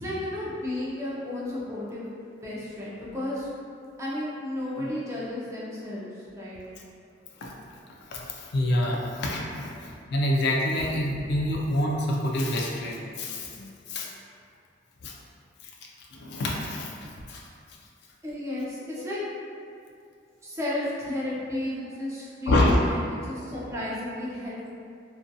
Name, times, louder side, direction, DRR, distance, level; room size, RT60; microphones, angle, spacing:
voice 1, 0.0-2.1 2.4-3.5 4.0-6.6 9.7-9.9 18.2-19.2 20.4-24.7, left 1 dB, 15° right, -7 dB, 0.4 m, -33 dB
voice 2, 8.1-14.1 15.0-15.1 16.1-17.4 22.5-23.0, left 1 dB, 60° left, -2 dB, 0.3 m, -27 dB
2.5 x 2.5 x 2.2 m, 2.4 s
head